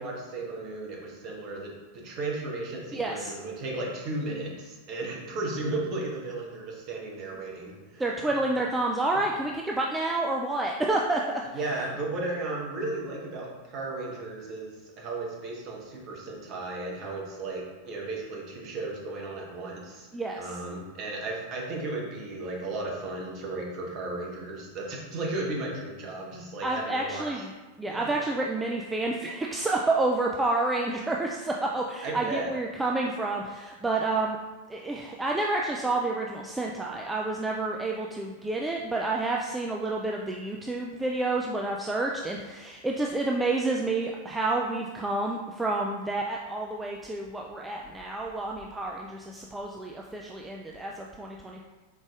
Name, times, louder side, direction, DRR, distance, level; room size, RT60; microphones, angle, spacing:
voice 1, 0.0-8.0 11.5-20.1 20.4-27.4 27.9-28.1 32.0-32.5, right 2 dB, 40° right, -2 dB, 1.0 m, -35 dB
voice 2, 2.9-3.3 8.0-11.4 20.1-20.6 26.6-27.5 27.8-34.4 34.7-51.6, right 2 dB, 10° right, -1 dB, 0.3 m, -29 dB
4.5 x 3.9 x 2.4 m, 1.2 s
figure-of-eight pair, 90°, 0 cm